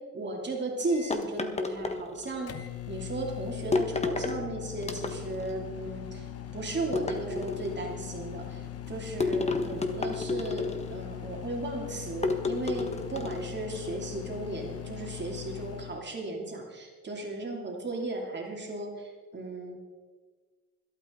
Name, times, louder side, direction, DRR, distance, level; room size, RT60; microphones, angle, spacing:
voice 1, 0.1-6.3 6.5-19.8, right 2 dB, 35° right, 0 dB, 2.8 m, -35 dB
Microwave oven, 0.9-16.0, left 11 dB, 50° left, 1.1 m, -41 dB
sound 1, 1.1-2.5 3.7-4.4 4.8-5.5 6.9-7.8 9.2-11.0 12.2-13.5, left 3 dB, 20° left, 1.4 m, -31 dB
25.5 x 8.8 x 3.9 m, 1.4 s
cardioid pair, 90°, 30 cm